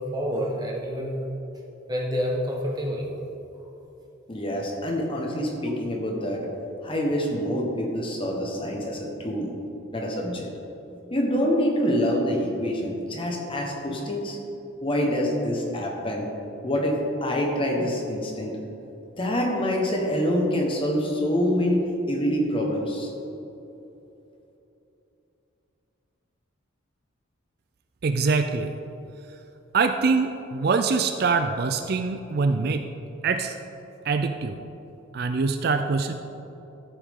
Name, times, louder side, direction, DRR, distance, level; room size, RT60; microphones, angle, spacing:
voice 1, 0.1-1.2 1.9-3.1, equal, 20° right, -2 dB, 1.4 m, -28 dB
voice 2, 4.3-6.5 6.8-9.5 9.9-10.5 11.1-14.4 14.8-16.3 16.6-18.6 19.2-23.1, equal, 25° left, 0 dB, 1.3 m, -26 dB
voice 3, 28.0-28.7 29.7-32.8 33.2-33.5 34.0-34.6 35.1-36.1, right 4 dB, 50° right, 7 dB, 0.4 m, -24 dB
13.5 x 8.0 x 3.7 m, 3.0 s
head